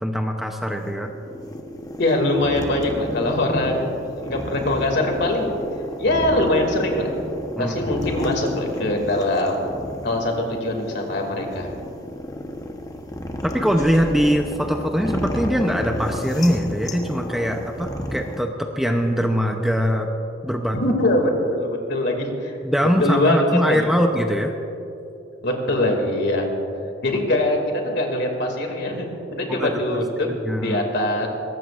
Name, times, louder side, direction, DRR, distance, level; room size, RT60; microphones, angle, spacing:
voice 1, 0.0-1.1 7.6-7.9 13.4-20.1 20.4-20.8 22.6-24.5 29.5-30.8, equal, ahead, 3 dB, 0.7 m, -22 dB
sound 1, 0.7-18.4, left 1 dB, 20° left, 1.0 m, -32 dB
voice 2, 2.0-5.6 6.0-7.1 7.6-9.5 10.0-11.7 20.7-22.6 23.0-23.9 25.4-26.5 27.0-29.1 29.3-30.3 30.6-31.3, left 1 dB, 60° left, 2 dB, 2.4 m, -22 dB
22.0 x 18.5 x 2.5 m, 2.8 s
head